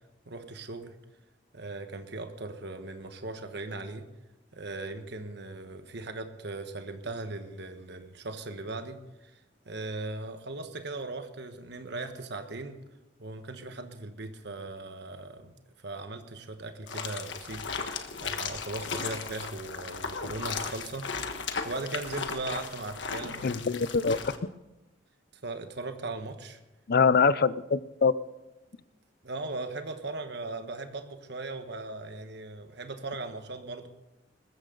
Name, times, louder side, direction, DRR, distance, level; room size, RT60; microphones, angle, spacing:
voice 1, 0.3-0.9 1.5-4.0 4.5-12.8 13.2-23.5 25.4-26.6 29.2-33.9, right 2 dB, 65° right, 1.3 m, -38 dB
sound 1, 16.9-24.4, left 5 dB, 80° left, 1.4 m, -36 dB
voice 2, 23.4-24.2 26.9-28.1, left 5 dB, 55° left, 0.5 m, -23 dB
20.5 x 14.5 x 3.9 m
head